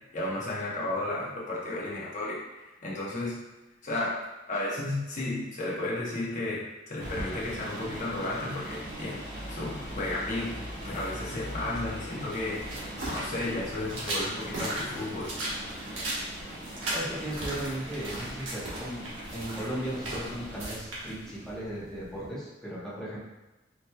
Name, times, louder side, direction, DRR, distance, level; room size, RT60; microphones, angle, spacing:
voice 1, 0.1-3.4 3.8-4.2 4.5-9.2 9.5-15.3, left 2 dB, 40° left, -5 dB, 0.9 m, -33 dB
sound 1, 7.0-20.6, equal, 45° right, 1.3 m, -41 dB
sound 2, 12.3-22.3, right 1 dB, 85° right, 1.2 m, -37 dB
voice 2, 16.9-19.0 19.3-23.2, right 1 dB, 5° left, -9 dB, 1.0 m, -36 dB
4.3 x 3.0 x 2.2 m, 1.1 s
head